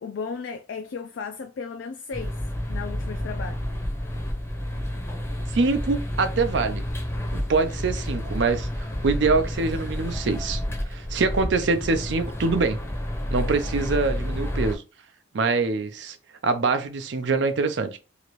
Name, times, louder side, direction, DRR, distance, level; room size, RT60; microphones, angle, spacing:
voice 1, 0.0-2.4 2.7-3.6, left 5 dB, 75° left, 0.3 m, -35 dB
sound 1, 2.1-14.8, equal, 15° left, 0.6 m, -30 dB
voice 2, 5.5-6.8 7.3-10.6 10.9-12.8 13.3-14.8 15.3-16.2 16.4-18.0, right 4 dB, 65° right, 0.5 m, -24 dB
2.9 x 2.5 x 3.0 m
head